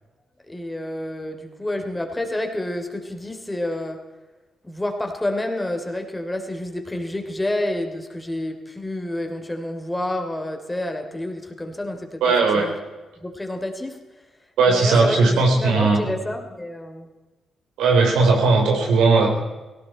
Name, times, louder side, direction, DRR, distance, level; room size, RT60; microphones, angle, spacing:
voice 1, 0.5-4.0 4.6-12.2 12.5-12.7 13.2-14.0 14.7-17.1, left 1 dB, 15° left, 5 dB, 3.2 m, -29 dB
voice 2, 12.2-12.7 14.6-16.1 17.8-19.4, right 3 dB, 85° right, 1 dB, 3.8 m, -17 dB
18.0 x 17.0 x 4.4 m, 1.2 s
supercardioid pair, 50°, 0 cm